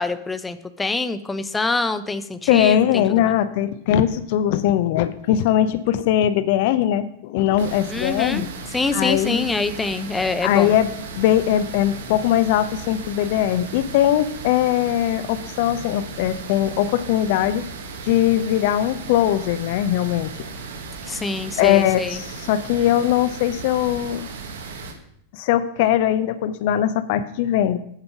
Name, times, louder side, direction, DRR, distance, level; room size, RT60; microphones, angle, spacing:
voice 1, 0.0-3.3 7.9-8.4 8.7-10.8 21.0-22.2, left 3 dB, 10° left, 12 dB, 0.6 m, -25 dB
voice 2, 2.5-8.5 8.9-9.5 10.4-10.9 11.2-17.6 18.0-20.3 21.6-24.3 25.3-27.8, left 11 dB, 50° left, 13 dB, 0.5 m, -20 dB
sound 1, 7.6-24.9, right 4 dB, 60° right, 1.4 m, -36 dB
8.9 x 5.2 x 5.8 m, 0.71 s
figure-of-eight pair, 90°, 0 cm